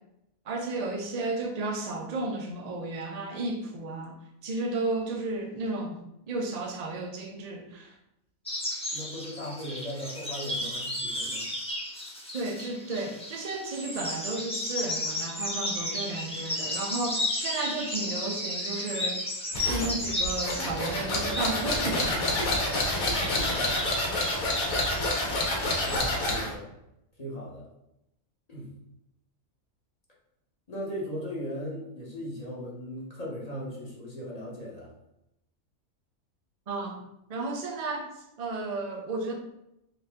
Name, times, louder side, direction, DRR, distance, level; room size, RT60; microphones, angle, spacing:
voice 1, 0.5-4.1 4.4-6.0 6.3-7.9 12.3-19.2 19.5-22.5 36.7-37.0 37.3-38.1 38.4-39.3, right 2 dB, 50° right, 3 dB, 0.5 m, -33 dB
sound 1, 8.4-26.0, left 1 dB, 10° left, 0.4 m, -34 dB
voice 2, 8.9-11.5 23.1-23.9 25.8-26.8 27.2-27.7 28.5-28.7 30.7-34.9, equal, 30° left, -5 dB, 1.0 m, -38 dB
sound 2, 19.5-26.5, left 1 dB, 75° left, 1.4 m, -28 dB
3.9 x 2.7 x 3.5 m, 0.83 s
omnidirectional pair, 1.5 m